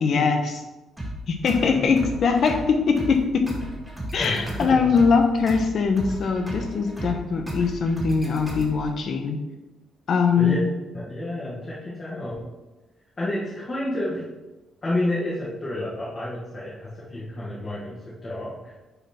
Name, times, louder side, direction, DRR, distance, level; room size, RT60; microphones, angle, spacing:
voice 1, 0.0-0.6 1.3-3.5 4.1-9.4 10.1-10.5, left 5 dB, 60° left, 6 dB, 0.9 m, -22 dB
sound 1, 1.0-9.0, equal, 5° right, 2.0 m, -35 dB
voice 2, 1.6-1.9 4.2-5.0 10.4-10.6 10.9-12.4 13.2-14.2 14.8-18.7, left 1 dB, 35° left, -7 dB, 1.7 m, -30 dB
6.9 x 4.2 x 4.3 m, 1.1 s
cardioid pair, 90°, 0 cm